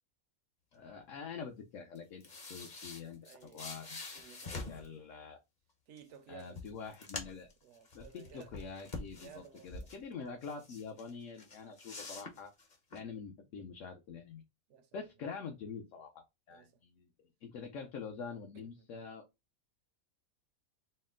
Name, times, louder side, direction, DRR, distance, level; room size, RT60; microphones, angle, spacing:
voice 1, 0.7-4.0 4.5-5.4 6.3-7.5 7.9-12.5 12.9-14.4 14.9-17.1 17.4-19.2, left 5 dB, 65° left, 1.0 m, -46 dB
sound 1, 2.0-4.9 6.0-6.1 6.4-7.5 7.9-10.0 10.4-11.1 11.4-13.0, left 3 dB, 40° left, 0.8 m, -45 dB
voice 2, 3.2-3.7 4.1-5.1 5.9-6.6 7.6-8.6 9.1-9.9 14.7-14.9 15.2-15.3 16.5-16.8 18.5-18.9, right 7 dB, 65° right, 0.8 m, -56 dB
4.3 x 2.1 x 3.6 m
omnidirectional pair, 1.5 m